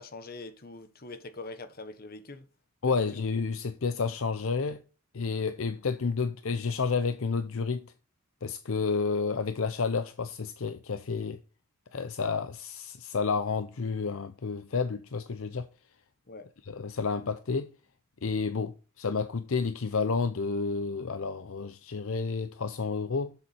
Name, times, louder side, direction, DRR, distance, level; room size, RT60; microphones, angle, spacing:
voice 1, 0.0-2.5 2.8-3.2 16.3-16.5, left 3 dB, 45° left, 1.2 m, -43 dB
voice 2, 2.8-4.8 5.1-7.9 8.4-11.4 11.9-15.7 16.7-17.7 18.2-23.3, left 4 dB, 65° left, 0.6 m, -30 dB
7.5 x 7.3 x 4.2 m
head